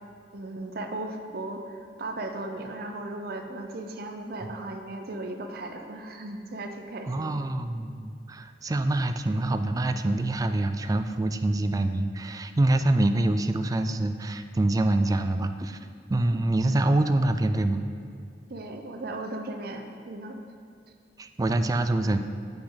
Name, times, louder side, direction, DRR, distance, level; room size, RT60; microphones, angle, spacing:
voice 1, 0.3-7.4 18.5-20.4, right 2 dB, 60° right, 5 dB, 0.6 m, -36 dB
voice 2, 7.1-15.8 16.1-17.8 21.2-22.2, right 2 dB, 20° right, 9 dB, 0.3 m, -25 dB
8.6 x 6.3 x 3.9 m, 2.2 s
head